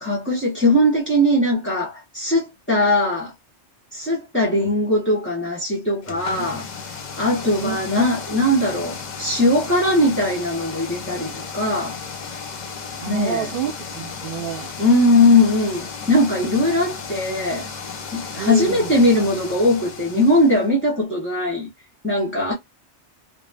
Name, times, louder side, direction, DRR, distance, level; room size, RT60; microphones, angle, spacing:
voice 1, 0.0-3.3 3.9-6.6 7.2-12.0 13.1-13.5 14.8-17.7 18.1-21.7 22.0-22.5, left 1 dB, 10° left, 0.7 m, -20 dB
sound 1, 6.0-20.7, left 5 dB, 50° left, 0.7 m, -34 dB
voice 2, 7.6-8.1 13.0-14.7 18.4-18.9, right 7 dB, 55° right, 0.7 m, -29 dB
2.5 x 2.0 x 3.3 m
omnidirectional pair, 1.2 m